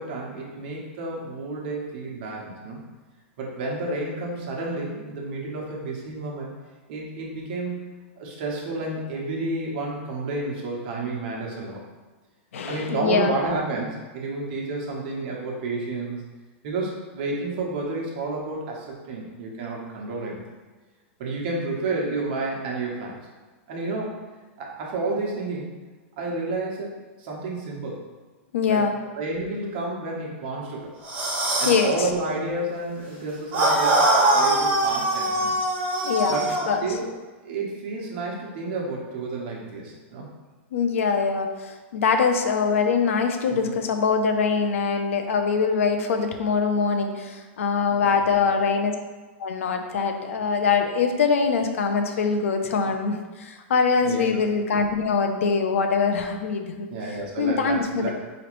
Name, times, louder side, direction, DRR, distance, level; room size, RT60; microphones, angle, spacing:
voice 1, 0.0-2.8 3.4-6.5 6.9-11.8 12.7-16.2 16.6-20.4 21.2-23.2 23.7-24.2 24.6-25.7 26.2-26.9 27.2-28.0 28.7-28.8 29.2-30.9 31.6-35.5 36.3-37.1 37.4-40.3 43.5-43.7 47.8-48.2 54.0-54.3 56.9-58.1, right 2 dB, 45° right, -2 dB, 1.0 m, -30 dB
voice 2, 12.5-13.4 28.5-28.9 31.7-32.1 36.0-36.8 40.7-48.9 49.4-56.9 57.4-58.1, left 5 dB, 85° left, 6 dB, 0.5 m, -23 dB
sound 1, 31.0-31.9 33.5-36.7, right 2 dB, 20° right, 1.1 m, -22 dB
4.9 x 3.1 x 3.1 m, 1.3 s
supercardioid pair, 165°, 7 cm